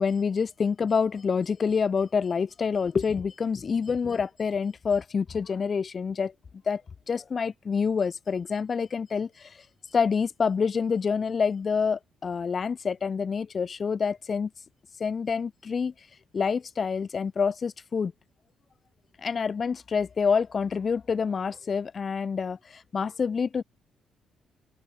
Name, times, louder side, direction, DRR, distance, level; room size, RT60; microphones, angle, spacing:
voice 1, 0.0-6.3 6.6-6.8 7.1-9.6 9.9-14.5 15.0-15.9 16.3-18.1 19.2-23.6, left 5 dB, 40° left, 1.7 m, -27 dB
cardioid pair, 90°, 0 cm